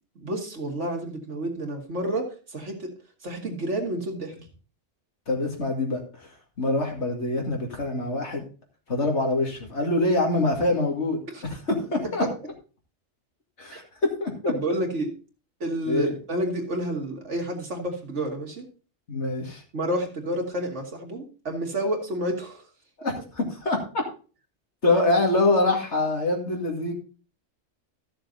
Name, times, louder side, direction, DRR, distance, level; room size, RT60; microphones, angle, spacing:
voice 1, 0.2-2.9 3.2-4.3 11.3-11.4 13.7-13.8 14.5-15.1 15.6-18.6 19.7-22.6, right 1 dB, 85° right, 2 dB, 2.5 m, -29 dB
voice 2, 5.3-6.3 6.6-8.4 8.9-12.2 13.6-14.5 15.9-16.2 19.1-19.6 23.0-24.0 24.8-26.9, left 2 dB, 75° left, 1 dB, 2.6 m, -25 dB
13.5 x 6.7 x 4.0 m, 0.37 s
omnidirectional pair, 1.2 m